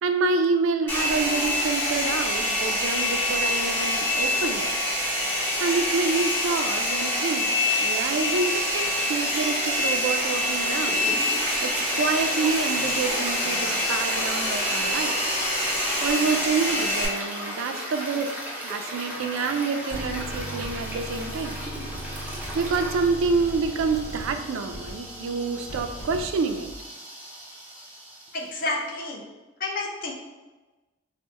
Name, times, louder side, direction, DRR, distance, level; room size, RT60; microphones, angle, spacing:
voice 1, 0.0-4.7 5.3-7.5 7.8-15.2 16.0-18.3 18.6-21.6 22.2-26.7, right 4 dB, 75° right, 7 dB, 0.3 m, -27 dB
Domestic sounds home sounds, 0.9-17.1, left 1 dB, 10° left, 0.8 m, -25 dB
Toilet flush, 10.9-28.8, equal, 10° right, 0.4 m, -37 dB
sound 1, 19.9-26.7, right 1 dB, 70° left, 1.5 m, -38 dB
voice 2, 28.3-29.3 29.6-30.1, left 2 dB, 45° left, 0 dB, 0.6 m, -30 dB
3.3 x 2.1 x 4.1 m, 1.2 s
head